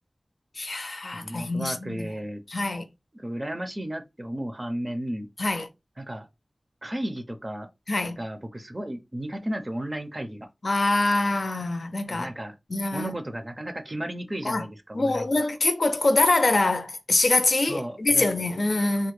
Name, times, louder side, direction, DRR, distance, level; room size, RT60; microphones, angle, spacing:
voice 1, 0.6-2.1 2.5-2.9 5.4-5.7 7.9-8.2 10.6-12.3 12.7-13.2 14.4-14.7 14.9-19.1, left 2 dB, 65° left, 0.5 m, -24 dB
voice 2, 1.1-2.4 3.1-5.3 6.0-6.3 6.8-7.7 8.2-10.5 12.1-12.5 12.9-15.3 17.7-18.3, right 1 dB, 35° right, 0.5 m, -34 dB
3.4 x 2.1 x 3.1 m
wide cardioid pair, 60°, 0 cm